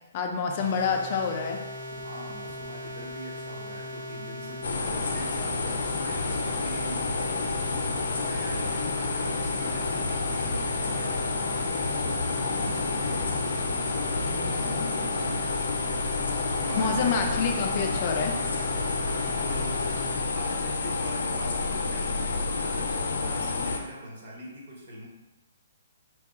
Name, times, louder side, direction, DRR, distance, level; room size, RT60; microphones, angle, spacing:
voice 1, 0.1-1.6 14.1-15.1 16.8-18.4, left 5 dB, 30° left, 3 dB, 0.4 m, -28 dB
sound 1, 0.6-20.2, equal, 85° right, 0.9 m, -39 dB
voice 2, 2.0-11.6 12.6-13.8 16.2-17.2 19.4-20.0 20.3-25.1, equal, 40° right, -3 dB, 1.1 m, -42 dB
sound 2, 4.6-23.8, left 3 dB, 80° left, 0.6 m, -29 dB
4.5 x 2.3 x 3.6 m, 1.1 s
hypercardioid pair, 170°, 0 cm